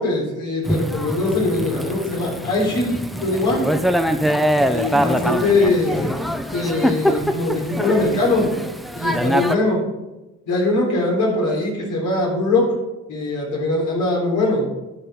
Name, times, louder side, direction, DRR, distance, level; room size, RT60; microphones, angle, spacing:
voice 1, 0.0-3.7 4.7-6.2 6.5-8.5 8.9-9.8 10.5-12.7 13.1-14.7, left 2 dB, 85° left, -2 dB, 3.8 m, -21 dB
Thunder / Rain, 0.6-9.6, equal, ahead, 0.6 m, -23 dB
12.5 x 5.4 x 4.6 m, 1.0 s
cardioid pair, 90°, 30 cm